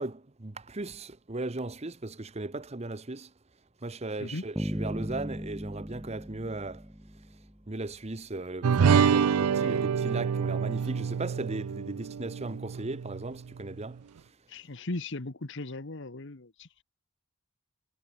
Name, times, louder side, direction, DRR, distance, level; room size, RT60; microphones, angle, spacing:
voice 1, 0.0-3.3 3.8-6.8 7.7-14.0, right 2 dB, 30° right, 0.9 m, -37 dB
Bass guitar, 4.6-7.6, equal, 5° right, 1.9 m, -37 dB
sound 1, 8.6-13.3, right 6 dB, 80° right, 0.4 m, -26 dB
voice 2, 14.5-16.8, left 2 dB, 55° left, 1.2 m, -38 dB
head